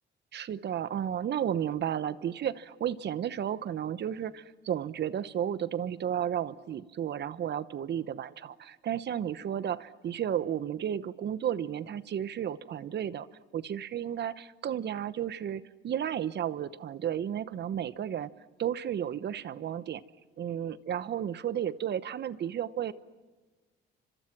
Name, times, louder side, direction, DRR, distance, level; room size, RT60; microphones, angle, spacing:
voice 1, 0.3-13.3 13.5-18.3 18.6-20.0 20.4-22.9, right 9 dB, 60° right, 15 dB, 1.0 m, -33 dB
30.0 x 25.5 x 6.1 m, 1.3 s
cardioid pair, 90°, 20 cm